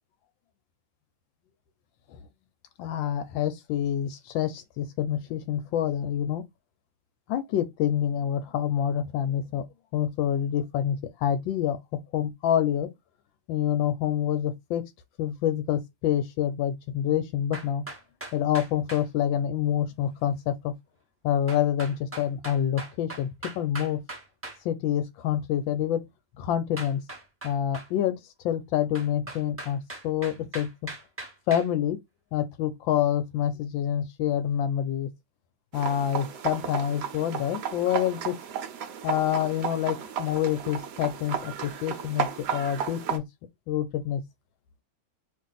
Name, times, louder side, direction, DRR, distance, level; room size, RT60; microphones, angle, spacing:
voice 1, 2.8-6.4 7.3-9.6 9.9-12.9 13.5-14.8 15.2-17.8 18.3-20.7 21.2-24.0 24.6-26.0 26.4-27.0 27.4-28.2 28.4-30.9 31.5-32.0 32.3-35.1 35.7-38.4 39.0-43.2 43.7-44.2, left 10 dB, 85° left, 1.3 m, -27 dB
sound 1, 17.5-19.1 21.5-24.6 26.8-27.9 29.0-31.7, right 2 dB, 10° right, 0.7 m, -40 dB
sound 2, 35.7-43.2, right 8 dB, 65° right, 1.2 m, -33 dB
3.0 x 2.6 x 3.9 m
omnidirectional pair, 2.1 m